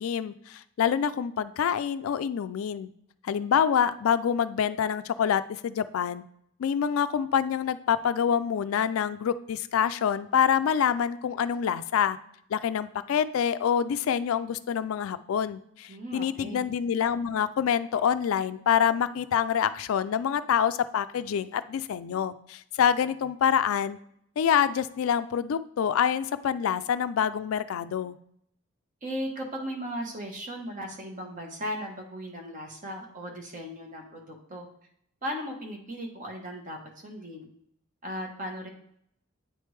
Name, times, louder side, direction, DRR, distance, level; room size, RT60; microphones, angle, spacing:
voice 1, 0.0-2.9 3.2-6.2 6.6-12.2 12.5-24.0 24.4-28.2, left 8 dB, 80° left, 13 dB, 0.3 m, -26 dB
voice 2, 15.9-16.6 29.0-34.7 35.2-37.5 38.0-38.7, equal, 40° right, 2 dB, 1.1 m, -37 dB
9.1 x 3.4 x 3.2 m, 0.70 s
head